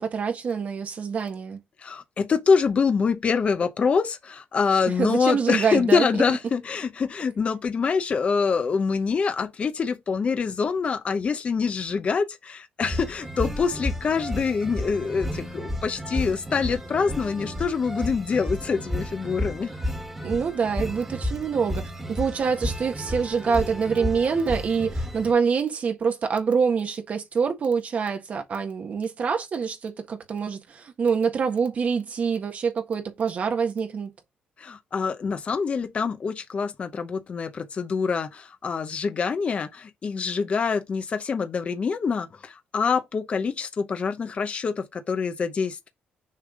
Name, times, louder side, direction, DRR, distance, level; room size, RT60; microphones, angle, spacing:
voice 1, 0.0-1.6 5.0-6.1 20.2-34.1, right 6 dB, 50° right, 1.6 m, -25 dB
voice 2, 1.8-19.7 34.6-45.9, left 5 dB, 40° left, 0.8 m, -25 dB
sound 1, 12.8-25.3, left 1 dB, 10° right, 1.8 m, -32 dB
6.6 x 3.4 x 5.0 m
cardioid pair, 120°, 3 cm